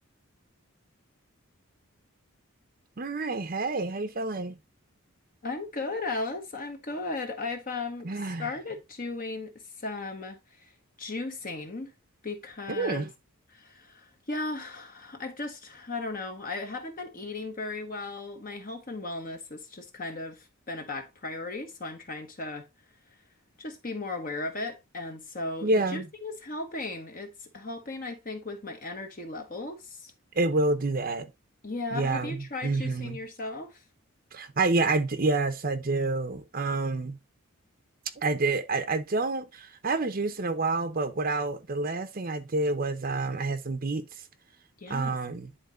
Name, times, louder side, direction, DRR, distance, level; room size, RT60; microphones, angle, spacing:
voice 1, 3.0-4.6 8.0-8.5 12.7-13.1 25.6-26.1 30.3-31.3 31.9-33.2 34.3-37.2 38.2-44.1 44.9-45.5, right 3 dB, 40° right, 0.7 m, -28 dB
voice 2, 5.4-8.1 8.4-10.7 11.0-11.9 12.2-13.1 13.5-22.7 23.6-30.1 31.6-33.8 44.8-45.2, left 3 dB, 40° left, 1.1 m, -36 dB
10.5 x 4.0 x 3.9 m
head